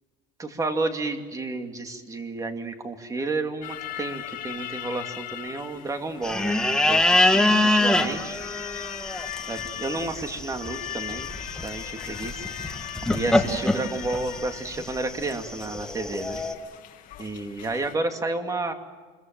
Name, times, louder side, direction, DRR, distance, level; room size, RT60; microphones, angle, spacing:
voice 1, 0.4-8.4 9.5-11.3 11.6-12.7 13.1-16.4 17.2-18.7, right 2 dB, 20° right, 6 dB, 2.5 m, -31 dB
sound 1, 3.6-17.9, left 11 dB, 50° left, 2.7 m, -39 dB
sound 2, 6.2-16.5, left 1 dB, 5° left, 1.6 m, -25 dB
26.0 x 23.0 x 7.7 m, 1.4 s
cardioid pair, 140°, 17 cm